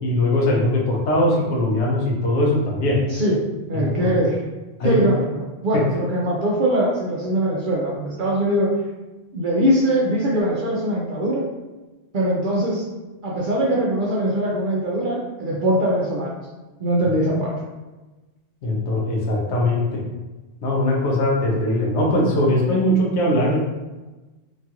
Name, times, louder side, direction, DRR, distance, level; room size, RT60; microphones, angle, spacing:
voice 1, 0.0-3.0 3.7-4.2 4.8-5.1 5.7-5.8 18.6-20.0 20.6-23.6, left 1 dB, 70° left, -2 dB, 1.0 m, -20 dB
voice 2, 3.7-4.4 4.8-8.7 9.3-11.4 12.1-12.8 13.2-16.3 16.8-17.5, right 1 dB, 55° right, -4 dB, 0.6 m, -21 dB
3.0 x 2.4 x 2.8 m, 1.1 s
omnidirectional pair, 1.2 m